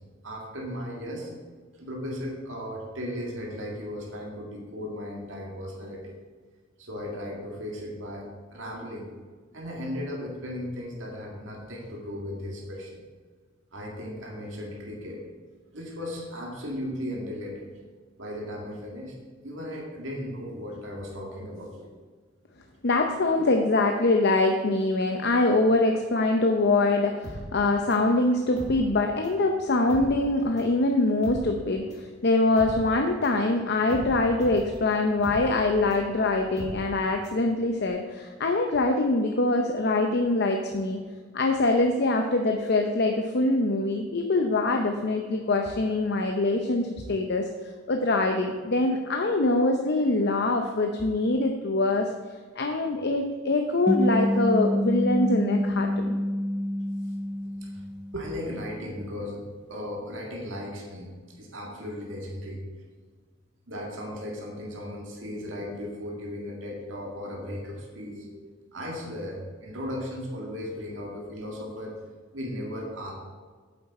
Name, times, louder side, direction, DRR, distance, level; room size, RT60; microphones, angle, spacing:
voice 1, 0.2-1.3 1.8-6.1 6.8-8.3 8.5-9.1 9.5-13.0 13.7-15.2 15.7-17.7 18.2-19.1 19.4-22.0 23.4-23.5 57.6-57.8 58.1-59.4 59.7-61.1 61.4-62.6 63.7-72.0 72.3-73.1, left 1 dB, 75° right, -1 dB, 2.0 m, -36 dB
voice 2, 22.8-41.0 41.3-47.5 47.9-52.1 52.6-56.2, left 2 dB, 55° left, 3 dB, 0.7 m, -24 dB
sound 1, 27.2-29.5 29.7-37.4 37.7-37.8, equal, 35° left, 2.2 m, -40 dB
sound 2, 53.9-58.5, equal, 5° right, 0.6 m, -27 dB
8.9 x 7.6 x 4.3 m, 1.5 s
head